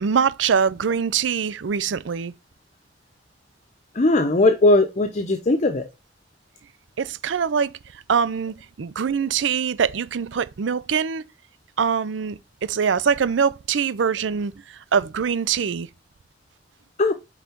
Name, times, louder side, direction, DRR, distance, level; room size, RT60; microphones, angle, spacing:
voice 1, 0.0-2.3 7.0-11.2 11.8-15.9, right 6 dB, 85° right, 0.5 m, -23 dB
voice 2, 3.9-5.8 17.0-17.1, left 2 dB, 40° left, 0.7 m, -18 dB
5.6 x 3.8 x 4.5 m
head